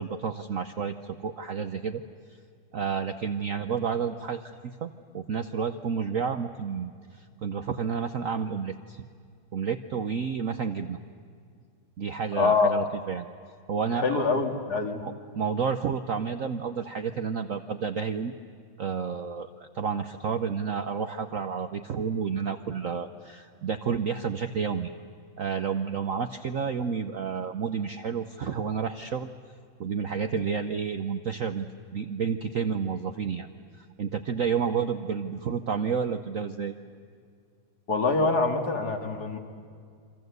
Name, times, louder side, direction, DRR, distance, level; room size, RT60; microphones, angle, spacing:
voice 1, 0.0-2.0 2.7-9.0 9.5-11.0 12.0-13.3 13.7-14.2 15.0-18.4 18.8-24.9 25.4-29.3 29.8-33.5 33.8-36.7, right 6 dB, 60° right, 8 dB, 0.9 m, -30 dB
voice 2, 12.3-12.7 13.9-15.0 37.9-39.4, left 4 dB, 50° left, 4 dB, 2.5 m, -25 dB
28.5 x 24.5 x 8.0 m, 2.2 s
omnidirectional pair, 2.2 m